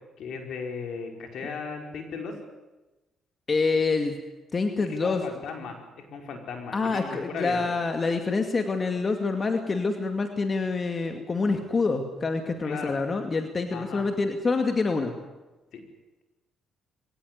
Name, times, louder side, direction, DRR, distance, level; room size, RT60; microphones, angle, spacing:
voice 1, 0.2-2.4 4.8-7.6 12.6-13.0 13.7-14.1 15.7-15.8, left 5 dB, 70° left, 3 dB, 5.3 m, -36 dB
voice 2, 3.5-4.2 4.5-5.2 6.7-15.1, left 4 dB, 35° left, 5 dB, 2.4 m, -26 dB
23.5 x 18.5 x 9.7 m, 1.1 s
cardioid pair, 90°, 0 cm